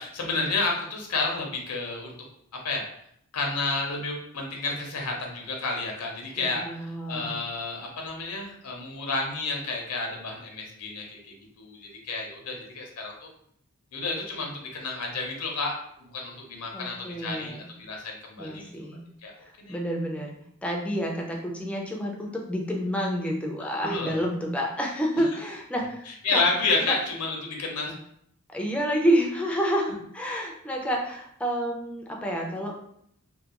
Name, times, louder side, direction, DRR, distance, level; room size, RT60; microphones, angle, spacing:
voice 1, 0.0-2.1 2.6-2.8 3.3-6.6 7.1-13.3 13.9-15.7 16.0-18.7 19.2-19.3 19.6-19.8 23.8-24.1 26.2-27.9, left 3 dB, 85° left, 1 dB, 0.6 m, -30 dB
voice 2, 6.4-7.4 16.7-17.7 18.4-19.0 19.4-20.4 20.6-26.4 26.9-27.0 28.5-32.7, equal, 5° left, -1 dB, 0.3 m, -29 dB
2.3 x 2.1 x 2.8 m, 0.70 s
head